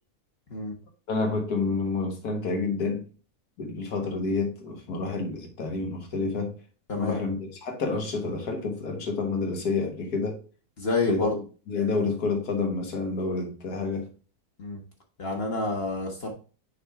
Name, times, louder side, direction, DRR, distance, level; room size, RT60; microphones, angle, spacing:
voice 1, 1.1-3.1 3.6-6.5 6.9-10.4 11.1-11.4 11.7-14.1, left 4 dB, 80° left, 2.0 m, -29 dB
voice 2, 10.8-11.4 14.6-14.8 15.2-16.3, left 2 dB, 45° left, 1.2 m, -28 dB
6.3 x 3.5 x 4.5 m
omnidirectional pair, 1.6 m